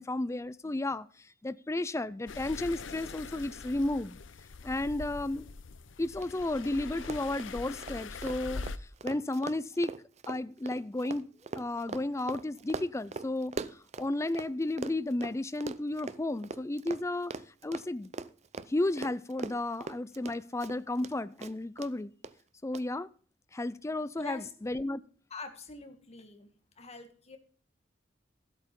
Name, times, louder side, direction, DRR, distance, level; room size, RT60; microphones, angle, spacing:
voice 1, 0.0-4.2 4.6-5.5 6.0-8.6 9.0-9.9 10.3-11.3 11.5-13.6 14.0-17.3 17.6-18.1 18.7-22.1 22.6-23.1 23.5-25.0, left 2 dB, 15° left, 0.4 m, -33 dB
sound 1, 2.3-8.8, left 4 dB, 70° left, 0.7 m, -43 dB
Run, 6.2-6.3 6.6-6.7 7.0-14.5 14.8-21.1 21.4-21.9 22.2-22.3 22.7-22.8, right 4 dB, 35° right, 0.6 m, -41 dB
voice 2, 24.2-24.5 25.3-26.5 26.8-27.4, left 4 dB, 35° left, 1.8 m, -45 dB
13.5 x 8.1 x 5.3 m
head